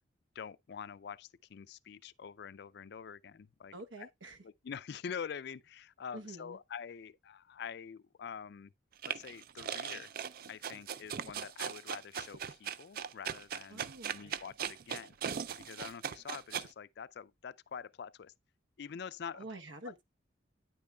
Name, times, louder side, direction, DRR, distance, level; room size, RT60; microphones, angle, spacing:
voice 1, 0.4-4.1 4.4-8.7 9.1-10.1 10.5-15.2 15.6-18.3 18.8-19.5 19.8-19.9, left 7 dB, 60° left, 0.4 m, -46 dB
voice 2, 3.7-4.4 6.1-6.6 13.7-14.4 19.3-20.0, right 2 dB, 75° right, 1.1 m, -48 dB
sound 1, 9.0-16.7, right 8 dB, 50° right, 0.4 m, -39 dB
9.5 x 8.4 x 2.3 m
head